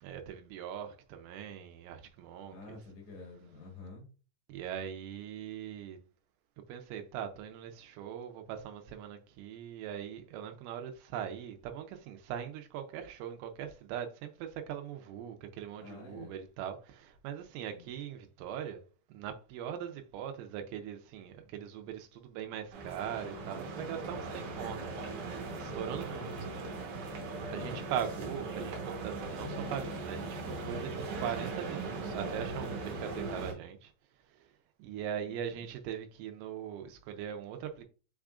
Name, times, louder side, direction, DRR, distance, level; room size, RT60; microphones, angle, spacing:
voice 1, 0.0-2.8 4.5-6.0 6.7-18.8 19.1-25.3 25.6-26.3 27.5-33.9 34.3-34.5 34.8-37.8, right 9 dB, 90° right, 2.5 m, -41 dB
voice 2, 2.5-4.0 15.8-16.3 17.6-17.9 26.1-26.7 27.5-27.9 35.3-35.6, left 2 dB, 60° left, 2.1 m, -49 dB
sound 1, 22.7-33.5, right 3 dB, 65° right, 2.4 m, -39 dB
5.8 x 3.6 x 2.3 m
omnidirectional pair, 4.3 m